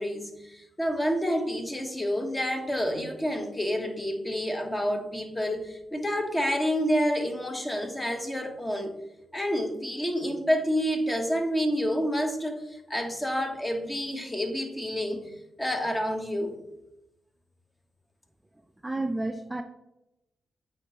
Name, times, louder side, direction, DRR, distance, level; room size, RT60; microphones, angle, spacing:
voice 1, 0.0-8.9 9.3-16.6, equal, 20° left, 4 dB, 1.3 m, -29 dB
voice 2, 18.8-19.6, right 2 dB, 20° right, 8 dB, 0.4 m, -30 dB
7.8 x 4.4 x 3.1 m, 0.90 s
hypercardioid pair, 40°, 0 cm